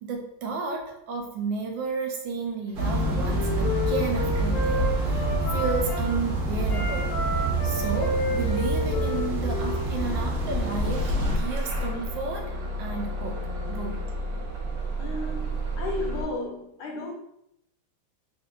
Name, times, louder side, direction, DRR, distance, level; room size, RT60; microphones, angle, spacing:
voice 1, 0.0-7.1 7.6-13.4 13.7-14.0, right 4 dB, 75° right, 2 dB, 1.2 m, -32 dB
sound 1, 2.7-11.4, right 1 dB, 55° right, 0.9 m, -27 dB
Wind instrument woodwind instrument, 2.8-6.2 6.6-10.3, left 1 dB, 45° left, 1.3 m, -32 dB
Bus / Engine starting, 9.5-16.2, right 1 dB, 90° right, 1.7 m, -32 dB
voice 2, 15.0-17.1, left 3 dB, 90° left, 1 dB, 0.8 m, -34 dB
4.4 x 3.6 x 2.3 m, 0.82 s
omnidirectional pair, 2.3 m